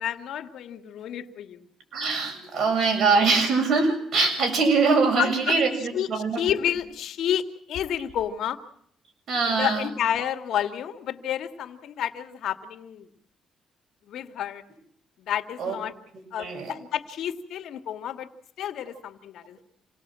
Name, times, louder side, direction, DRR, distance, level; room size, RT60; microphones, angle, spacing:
voice 1, 0.0-1.7 5.2-8.6 9.5-13.1 14.1-14.6 15.2-15.9 16.3-18.3 18.6-19.6, left 10 dB, 75° left, 7 dB, 2.1 m, -30 dB
voice 2, 1.9-6.4 9.3-9.9 15.6-15.8 16.4-16.7, right 4 dB, 60° right, 4 dB, 7.2 m, -23 dB
28.5 x 19.0 x 7.6 m, 0.69 s
cardioid pair, 90°, 0 cm